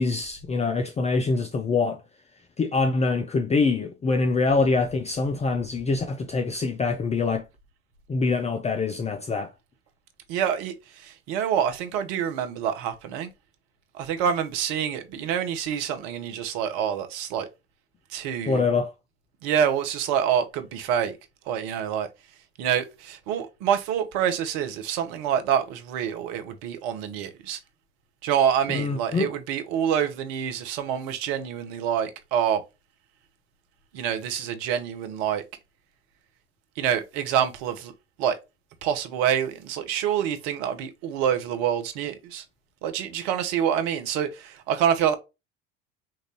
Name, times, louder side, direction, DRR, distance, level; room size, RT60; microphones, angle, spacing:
voice 1, 0.0-2.0 2.6-7.4 8.1-9.5 18.5-18.9 28.7-29.3, left 4 dB, 20° left, 0.6 m, -24 dB
voice 2, 10.3-13.3 13.9-17.5 18.1-18.7 19.4-21.2 21.5-22.1 22.6-27.6 28.2-32.6 33.9-35.4 36.8-37.9 38.2-38.4 38.8-42.4 42.8-45.2, right 9 dB, 60° right, 1.0 m, -26 dB
5.8 x 2.6 x 3.1 m
hypercardioid pair, 75°, 32 cm